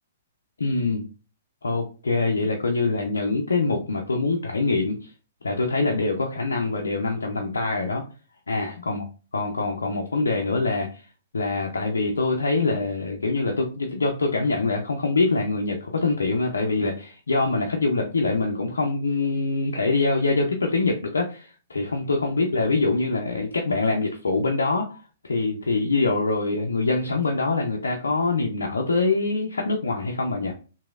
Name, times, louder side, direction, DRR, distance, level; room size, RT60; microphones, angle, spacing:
voice 1, 0.6-1.0 1.6-4.9 5.4-8.0 8.5-9.0 9.3-11.0 11.3-25.0 25.2-30.5, left 3 dB, 90° left, 1 dB, 0.5 m, -24 dB
3.0 x 2.6 x 2.4 m, 0.35 s
hypercardioid pair, 130°, 0 cm